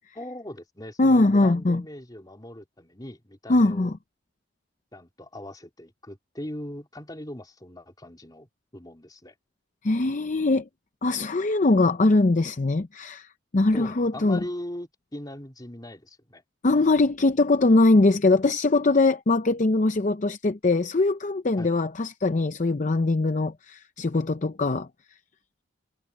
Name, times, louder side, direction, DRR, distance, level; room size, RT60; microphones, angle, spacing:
voice 1, 0.1-3.9 4.9-9.3 13.7-16.4 21.6-21.7, left 1 dB, 20° left, 3.3 m, -40 dB
voice 2, 1.0-1.8 3.5-3.9 9.8-10.7 11.0-14.4 16.6-24.9, left 2 dB, 40° left, 0.6 m, -22 dB
head